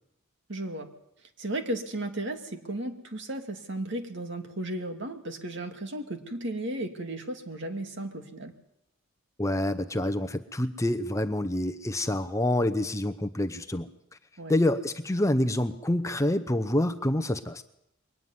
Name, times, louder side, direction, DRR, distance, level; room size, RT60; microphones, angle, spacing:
voice 1, 0.5-0.9 1.4-8.5 14.4-14.5, right 1 dB, 55° right, 5 dB, 2.3 m, -34 dB
voice 2, 9.4-13.9 14.5-17.6, left 1 dB, 15° left, 9 dB, 0.8 m, -27 dB
22.5 x 12.5 x 9.7 m, 0.79 s
head